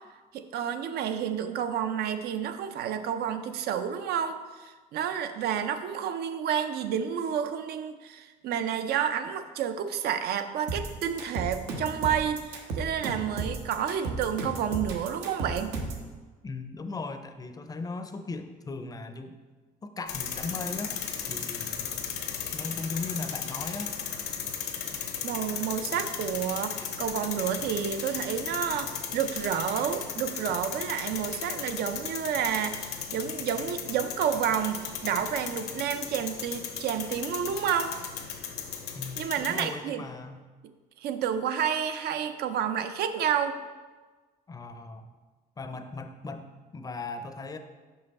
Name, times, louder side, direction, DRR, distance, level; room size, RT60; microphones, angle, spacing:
voice 1, 0.3-15.8 24.6-24.7 25.2-37.9 39.2-40.0 41.0-43.6, right 8 dB, 70° right, 9 dB, 0.5 m, -30 dB
sound 1, 10.7-16.1, right 3 dB, 85° right, 1.0 m, -34 dB
voice 2, 16.4-19.4 19.8-21.0 21.3-21.9 22.5-24.0 38.9-40.5 44.5-45.1 45.6-47.6, left 3 dB, 20° left, 8 dB, 0.5 m, -38 dB
sound 2, 20.1-39.6, left 7 dB, 75° left, 0.9 m, -36 dB
5.6 x 5.5 x 4.1 m, 1.3 s
cardioid pair, 110°, 17 cm